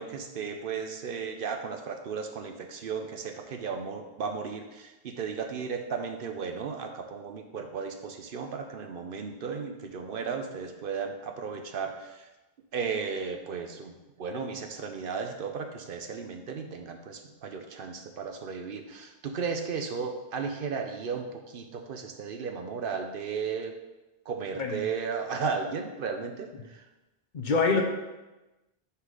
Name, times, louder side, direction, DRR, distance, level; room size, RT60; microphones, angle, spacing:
voice 1, 0.0-12.3 12.7-23.7 24.3-26.8, right 5 dB, 65° right, 4 dB, 0.8 m, -35 dB
voice 2, 24.5-24.9 27.3-27.8, left 4 dB, 55° left, 3 dB, 0.8 m, -25 dB
5.6 x 4.0 x 4.7 m, 1.1 s
omnidirectional pair, 1.0 m